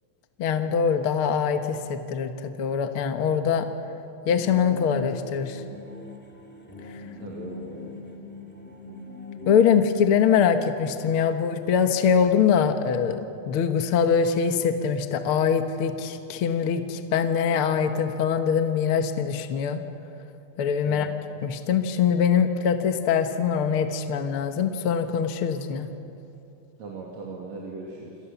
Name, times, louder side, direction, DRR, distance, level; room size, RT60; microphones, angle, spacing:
voice 1, 0.4-3.7 4.3-5.6 9.5-13.2 13.5-19.8 20.6-21.1 21.4-25.9, left 7 dB, 55° left, 7 dB, 1.8 m, -23 dB
sound 1, 4.2-9.6, left 3 dB, 5° left, 2.3 m, -41 dB
voice 2, 7.2-7.9 20.8-21.2 26.8-28.2, right 3 dB, 60° right, -2 dB, 4.0 m, -39 dB
28.5 x 27.0 x 7.1 m, 2.7 s
omnidirectional pair, 3.5 m